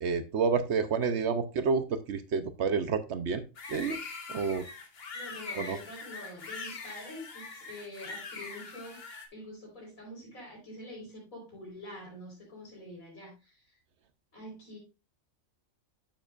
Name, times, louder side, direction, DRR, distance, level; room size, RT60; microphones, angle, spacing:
voice 1, 0.0-3.4 3.7-4.0 4.3-4.7 5.6-5.8, right 5 dB, 65° right, 11 dB, 0.9 m, -29 dB
sound 1, 3.6-9.3, left 4 dB, 50° left, 1.4 m, -42 dB
voice 2, 5.1-9.0 9.3-13.7 14.3-14.8, left 1 dB, 90° left, -1 dB, 4.6 m, -46 dB
8.9 x 7.5 x 2.4 m, 0.29 s
omnidirectional pair, 1.4 m